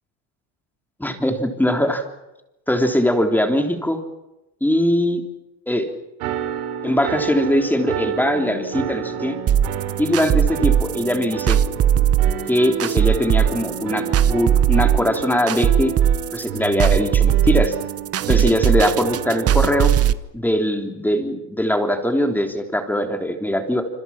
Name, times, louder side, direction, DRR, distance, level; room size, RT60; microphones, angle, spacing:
voice 1, 1.0-2.0 2.7-4.0 4.6-5.2 5.7-5.9 6.8-9.4 10.0-11.6 12.5-15.9 16.3-17.7 18.3-19.9 20.3-23.8, equal, 5° left, 5 dB, 3.4 m, -21 dB
sound 1, 6.2-19.9, right 9 dB, 85° right, 5.0 m, -30 dB
sound 2, 9.5-20.1, right 9 dB, 35° right, 1.1 m, -18 dB
27.0 x 26.0 x 5.9 m, 0.95 s
supercardioid pair, 120°, 42 cm